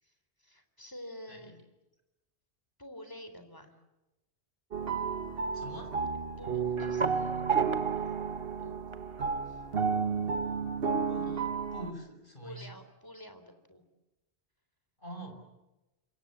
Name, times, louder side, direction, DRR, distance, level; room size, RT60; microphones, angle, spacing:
voice 1, 0.0-1.5 2.8-3.8 6.4-7.4 8.6-8.8 11.2-11.5 12.4-13.8, left 1 dB, 20° left, 8 dB, 3.7 m, -48 dB
sound 1, 4.7-11.9, right 5 dB, 60° right, 1.5 m, -32 dB
voice 2, 5.5-5.9 9.5-9.6 11.1-11.4 11.7-12.7 15.0-15.3, equal, 50° left, 4 dB, 6.2 m, -44 dB
sound 2, 6.4-9.7, right 6 dB, 25° right, 1.2 m, -35 dB
28.0 x 25.0 x 8.6 m, 1.0 s
omnidirectional pair, 1.1 m